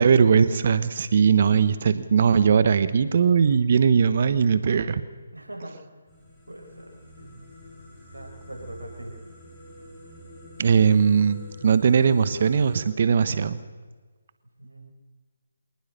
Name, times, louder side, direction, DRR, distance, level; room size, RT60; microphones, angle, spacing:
voice 1, 0.0-5.0 10.6-13.6, right 6 dB, 50° right, 13 dB, 1.3 m, -20 dB
voice 2, 5.3-5.8 6.5-7.4 8.1-9.2 14.6-14.9, right 1 dB, 90° right, 1 dB, 7.4 m, -41 dB
sound 1, 6.1-12.9, equal, 10° left, 7.5 m, -46 dB
26.0 x 19.0 x 6.9 m, 1.3 s
figure-of-eight pair, 150°, 0 cm